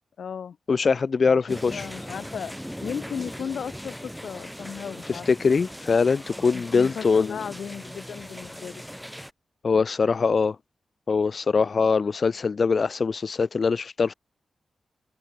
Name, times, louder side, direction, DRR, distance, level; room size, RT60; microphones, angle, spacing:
voice 1, 0.2-0.6 1.2-2.5 2.8-5.3 6.5-8.8, left 7 dB, 80° left, 1.5 m, -35 dB
voice 2, 0.7-1.9 5.1-7.4 9.6-10.6 11.1-14.1, left 5 dB, 50° left, 0.6 m, -22 dB
sound 1, 1.5-9.3, equal, ahead, 0.9 m, -39 dB
wide cardioid pair, 95°, 0 cm